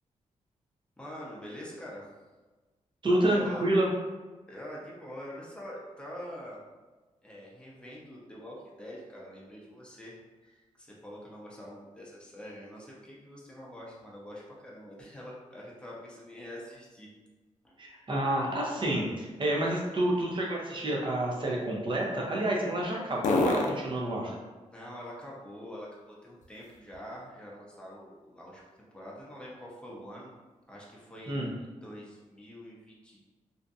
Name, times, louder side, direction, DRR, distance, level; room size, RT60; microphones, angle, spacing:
voice 1, 1.0-2.1 3.1-3.6 4.5-6.6 7.2-10.2 10.4-17.1 17.6-17.7 24.7-28.6 28.9-30.3 30.7-31.5 31.8-33.3, equal, 5° left, -5 dB, 0.7 m, -45 dB
voice 2, 3.0-3.9 17.8-24.4 31.3-31.5, right 1 dB, 40° right, -2 dB, 0.7 m, -29 dB
sound 1, 18.3-27.3 27.8-31.6, left 3 dB, 70° left, 0.4 m, -39 dB
2.6 x 2.1 x 2.5 m, 1.2 s
cardioid pair, 70°, 13 cm